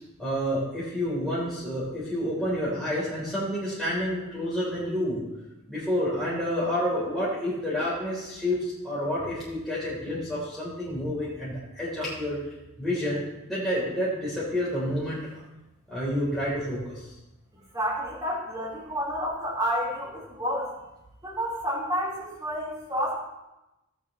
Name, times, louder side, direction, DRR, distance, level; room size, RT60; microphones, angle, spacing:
voice 1, 0.2-5.2 5.7-12.4 12.8-15.3 15.9-17.1, equal, ahead, -10 dB, 3.9 m, -29 dB
voice 2, 17.7-20.7 21.2-23.1, equal, 15° right, -8 dB, 4.5 m, -30 dB
18.0 x 7.2 x 3.3 m, 0.97 s
head